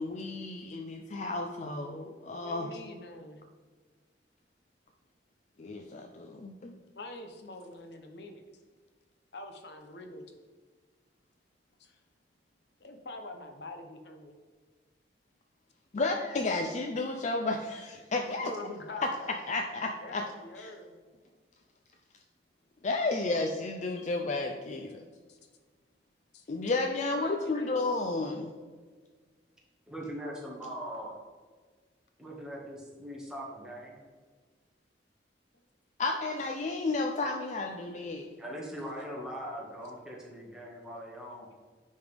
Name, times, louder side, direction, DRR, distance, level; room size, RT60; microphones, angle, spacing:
voice 1, 0.0-2.7 5.6-6.7 15.9-18.5 18.9-19.1 19.5-20.2 20.6-20.7 22.8-25.0 26.5-28.6 36.0-38.3, left 3 dB, 40° left, 4 dB, 0.5 m, -32 dB
voice 2, 2.4-3.4 7.0-8.4 9.3-10.2 11.8-11.9 12.8-14.4 18.3-19.4 20.0-20.9 25.3-25.4 26.3-27.8 39.0-39.1, left 2 dB, 65° left, 5 dB, 0.8 m, -45 dB
voice 3, 29.9-31.2 32.2-34.0 38.4-41.5, equal, 5° right, -4 dB, 1.7 m, -41 dB
9.3 x 5.4 x 3.5 m, 1.5 s
head